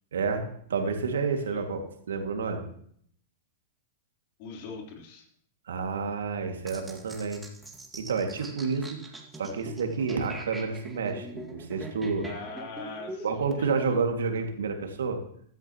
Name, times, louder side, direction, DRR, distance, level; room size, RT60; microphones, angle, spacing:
voice 1, 0.1-2.7 5.7-7.4 7.9-8.9 9.4-12.3 13.2-15.2, right 5 dB, 75° right, 4 dB, 2.1 m, -29 dB
voice 2, 4.4-5.3 12.2-13.9, left 3 dB, 55° left, 1 dB, 3.5 m, -42 dB
sound 1, 6.7-13.6, right 2 dB, 10° right, 2.0 m, -43 dB
15.0 x 13.0 x 3.0 m, 0.64 s
hypercardioid pair, 105°, 0 cm